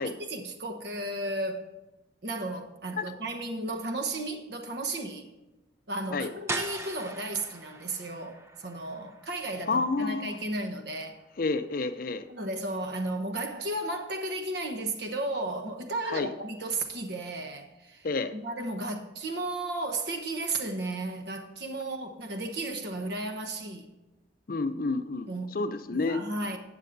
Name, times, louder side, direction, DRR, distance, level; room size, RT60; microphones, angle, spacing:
voice 1, 0.0-1.7 2.2-5.3 5.9-11.2 12.3-18.1 18.3-23.9 25.3-25.6 25.9-26.6, right 2 dB, 60° right, 1.0 m, -34 dB
sound 1, 6.5-12.1, right 2 dB, 15° right, 0.5 m, -41 dB
voice 2, 9.7-10.4 11.4-12.2 16.1-16.3 18.0-18.3 24.5-25.3 25.5-26.2, left 3 dB, 50° left, 0.5 m, -29 dB
14.5 x 8.3 x 2.6 m
head